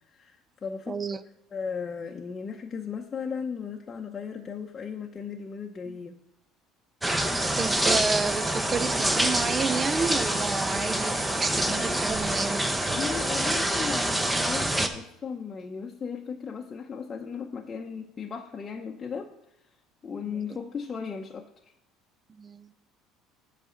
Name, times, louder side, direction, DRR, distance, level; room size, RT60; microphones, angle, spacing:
voice 1, 0.1-1.0 1.5-6.2 11.6-11.9 12.9-19.3 20.0-21.5, left 6 dB, 30° left, 0 dB, 0.8 m, -36 dB
voice 2, 0.9-1.2 5.9-6.0 7.6-12.6 22.3-22.7, right 5 dB, 25° right, 15 dB, 0.5 m, -30 dB
sound 1, 7.0-14.9, right 1 dB, 10° right, 0.9 m, -26 dB
8.3 x 4.2 x 7.1 m, 0.85 s
supercardioid pair, 110°, 0 cm